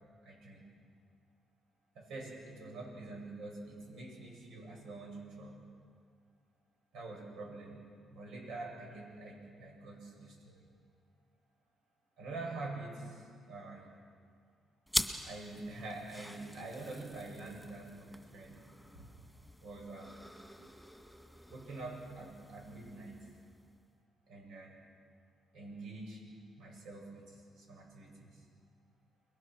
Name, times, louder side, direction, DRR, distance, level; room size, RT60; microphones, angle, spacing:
voice 1, 0.2-0.7 1.9-5.6 6.9-7.8 8.1-10.7 12.2-13.9 15.2-18.6 18.9-19.1 19.6-20.1 21.5-23.2 24.3-24.8 25.5-28.4, right 2 dB, 85° right, 0 dB, 7.9 m, -46 dB
sound 1, 14.9-23.8, equal, ahead, 2.1 m, -44 dB
29.5 x 22.0 x 6.3 m, 2.1 s
cardioid pair, 90°, 0 cm